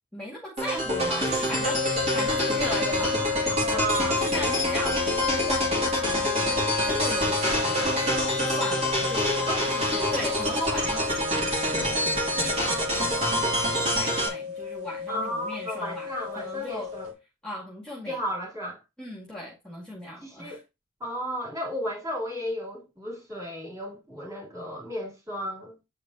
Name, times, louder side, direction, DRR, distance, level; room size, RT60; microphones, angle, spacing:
voice 1, 0.1-3.9 4.2-8.0 8.4-9.5 9.7-11.3 11.5-12.0 12.3-16.1 16.4-16.9 17.4-18.2 19.0-20.6, left 1 dB, 5° left, 2.1 m, -37 dB
sound 1, 0.6-14.3, equal, 30° right, 2.6 m, -26 dB
sound 2, 1.6-17.1, left 6 dB, 80° right, 2.4 m, -33 dB
voice 2, 3.7-4.5 9.5-9.7 10.2-10.4 15.1-17.1 18.1-18.8 20.2-20.6 21.0-25.8, equal, 15° right, 3.4 m, -33 dB
8.6 x 5.1 x 2.8 m
head